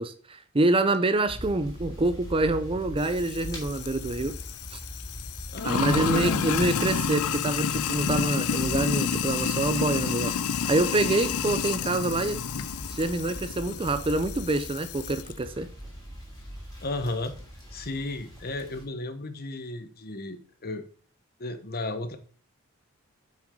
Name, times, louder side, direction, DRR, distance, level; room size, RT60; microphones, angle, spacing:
voice 1, 0.0-4.4 4.7-4.8 5.6-10.4 10.7-12.4 12.9-15.7, right 2 dB, 25° right, 0.6 m, -26 dB
sound 1, 1.3-18.8, equal, 15° left, 3.0 m, -42 dB
Sink (filling or washing), 3.0-15.3, left 6 dB, 75° left, 0.6 m, -30 dB
voice 2, 5.5-6.5 16.8-17.3 17.7-20.8 21.4-22.2, left 2 dB, 45° left, 1.1 m, -34 dB
8.6 x 6.0 x 3.8 m
head